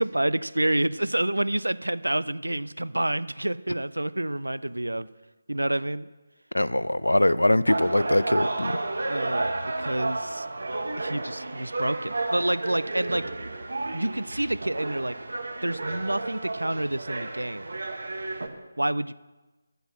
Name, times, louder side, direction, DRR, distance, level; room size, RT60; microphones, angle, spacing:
voice 1, 0.0-5.1 5.5-6.1 9.1-10.5 11.0-13.2 13.9-15.2 15.6-17.7 18.8-19.1, right 1 dB, 75° right, 17 dB, 0.4 m, -28 dB
voice 2, 6.5-8.8, left 1 dB, 75° left, 17 dB, 0.5 m, -22 dB
sound 1, 7.7-18.5, right 2 dB, 60° right, 1.1 m, -32 dB
8.6 x 8.0 x 7.5 m, 1.2 s
figure-of-eight pair, 155°, 0 cm